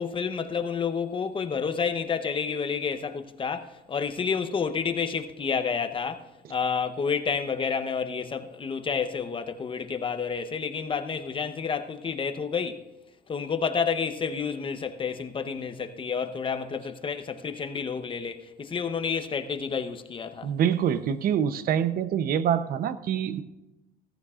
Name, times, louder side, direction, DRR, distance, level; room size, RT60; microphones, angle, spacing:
voice 1, 0.0-6.2 6.5-12.8 13.3-20.5, left 6 dB, 30° left, 0.9 m, -30 dB
voice 2, 20.4-23.4, right 9 dB, 60° right, 0.8 m, -25 dB
17.5 x 14.5 x 2.5 m
cardioid pair, 110°, 17 cm